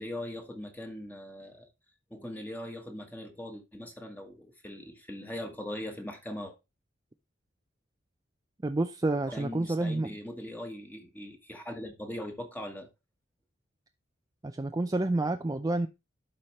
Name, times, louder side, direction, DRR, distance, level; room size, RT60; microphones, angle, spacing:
voice 1, 0.0-1.6 2.1-6.5 9.3-12.9, left 1 dB, 10° left, 1.3 m, -40 dB
voice 2, 8.6-10.1 14.4-15.9, right 2 dB, 20° right, 0.4 m, -29 dB
12.0 x 4.4 x 3.2 m
head